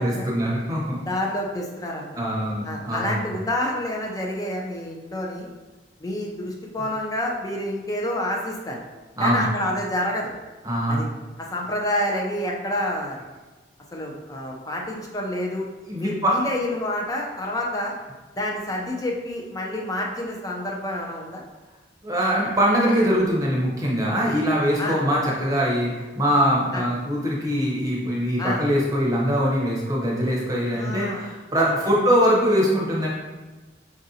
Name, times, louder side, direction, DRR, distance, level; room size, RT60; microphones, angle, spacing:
voice 1, 0.0-1.0 2.2-3.3 9.2-9.5 10.6-11.0 15.9-16.3 22.0-33.1, equal, 20° right, -4 dB, 0.8 m, -22 dB
voice 2, 1.1-2.0 2.6-5.5 6.0-8.8 9.2-10.3 10.9-11.1 11.4-13.2 13.9-15.7 16.0-17.9 18.4-21.4 24.8-25.0 26.7-26.8 28.4-28.6 30.7-31.3 31.6-31.7, left 1 dB, 20° left, -1 dB, 0.5 m, -28 dB
5.0 x 2.5 x 2.7 m, 1.2 s
head